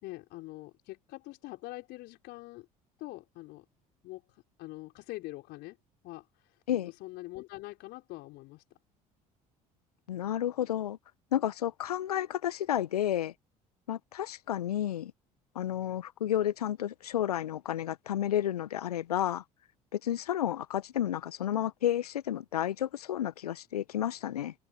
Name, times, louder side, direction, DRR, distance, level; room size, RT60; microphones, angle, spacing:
voice 1, 0.0-2.7 3.0-3.6 4.0-5.8 6.0-6.6 6.9-8.6, left 20 dB, 60° left, 4.2 m, -44 dB
voice 2, 10.1-11.0 11.3-13.3 13.9-15.1 15.5-19.4 19.9-24.5, left 11 dB, 80° left, 1.0 m, -31 dB
figure-of-eight pair, 60°, 19 cm